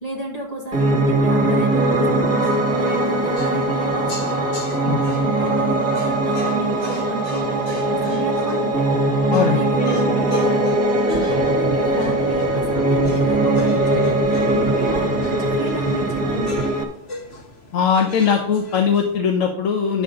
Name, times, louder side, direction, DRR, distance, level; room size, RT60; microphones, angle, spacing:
voice 1, 0.0-2.5 2.8-4.5 4.8-8.9 9.5-10.6 11.0-14.2 14.5-16.6, right 2 dB, 30° left, -3 dB, 1.8 m, -31 dB
Piano, 0.7-16.8, right 1 dB, 35° right, 1.5 m, -20 dB
sound 1, 2.0-19.2, left 2 dB, 55° left, 1.8 m, -39 dB
sound 2, 11.1-16.7, right 3 dB, 60° right, 1.0 m, -29 dB
voice 2, 17.7-20.0, left 6 dB, 85° left, 3 dB, 1.3 m, -20 dB
10.5 x 6.7 x 3.9 m, 0.74 s
omnidirectional pair, 1.3 m